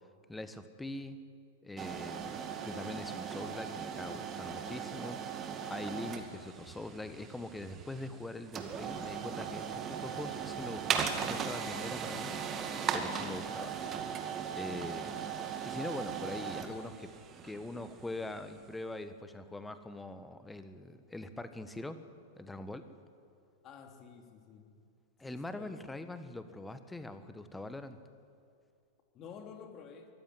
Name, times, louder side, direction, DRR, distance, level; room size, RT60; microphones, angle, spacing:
voice 1, 0.3-1.2 1.6-5.2 5.7-13.8 14.5-15.2 15.6-17.1 17.4-22.0 22.3-22.9 25.2-28.0, left 2 dB, 5° left, 11 dB, 1.4 m, -43 dB
sound 1, 1.8-18.6, right 7 dB, 25° right, 2.1 m, -38 dB
voice 2, 23.6-24.6 25.2-25.7 29.1-30.1, left 7 dB, 30° left, 4 dB, 3.3 m, -50 dB
23.5 x 14.5 x 9.6 m, 2.3 s
figure-of-eight pair, 95°, 0 cm